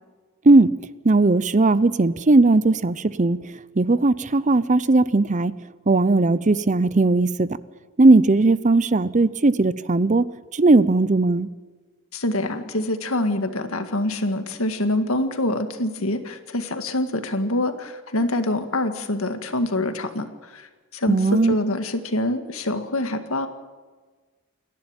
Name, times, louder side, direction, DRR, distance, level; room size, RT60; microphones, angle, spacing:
voice 1, 1.0-5.5 5.9-7.5 8.0-10.2 10.5-11.5 21.1-21.5, right 2 dB, 35° right, 17 dB, 0.6 m, -18 dB
voice 2, 12.1-23.5, left 1 dB, 75° left, 8 dB, 1.9 m, -25 dB
28.5 x 11.5 x 9.0 m, 1.4 s
head